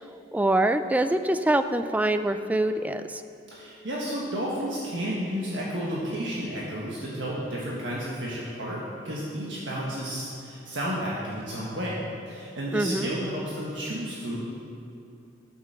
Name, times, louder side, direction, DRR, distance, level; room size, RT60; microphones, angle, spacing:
voice 1, 0.3-3.2 12.7-13.1, right 1 dB, 10° right, 10 dB, 0.3 m, -24 dB
voice 2, 3.5-14.4, equal, 70° right, -5 dB, 1.5 m, -32 dB
9.7 x 7.1 x 6.7 m, 2.6 s
head